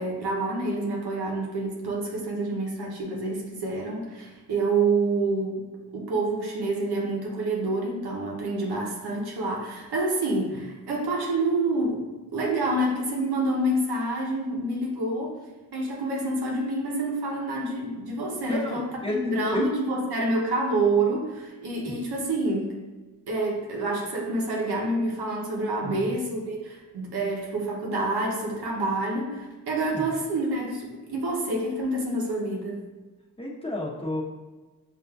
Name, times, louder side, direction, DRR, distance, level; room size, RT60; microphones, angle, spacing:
voice 1, 0.0-5.6 5.9-12.0 12.3-15.4 15.7-22.7 23.3-32.8, right 2 dB, 85° right, -2 dB, 0.9 m, -27 dB
voice 2, 18.4-19.6 25.8-26.0 29.9-30.1 33.4-34.2, left 1 dB, 15° left, -3 dB, 0.9 m, -31 dB
5.6 x 2.7 x 2.3 m, 1.2 s
cardioid pair, 50°, 38 cm